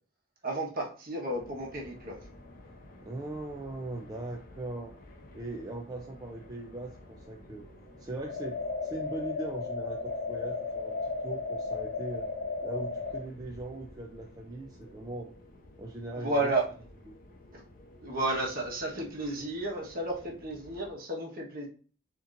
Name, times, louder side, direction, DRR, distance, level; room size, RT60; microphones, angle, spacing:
voice 1, 0.4-2.2 16.1-16.7 18.0-21.7, right 2 dB, 45° right, -1 dB, 1.2 m, -32 dB
sound 1, 1.3-20.9, left 1 dB, 45° left, 0.8 m, -53 dB
voice 2, 3.0-4.9 5.3-7.7 8.0-11.0 11.2-12.3 12.6-15.3 15.8-16.5 17.1-17.2, right 2 dB, 20° right, 0 dB, 0.4 m, -40 dB
sound 2, 8.2-13.2, left 4 dB, 75° left, 0.8 m, -34 dB
6.9 x 2.9 x 2.5 m, 0.40 s
head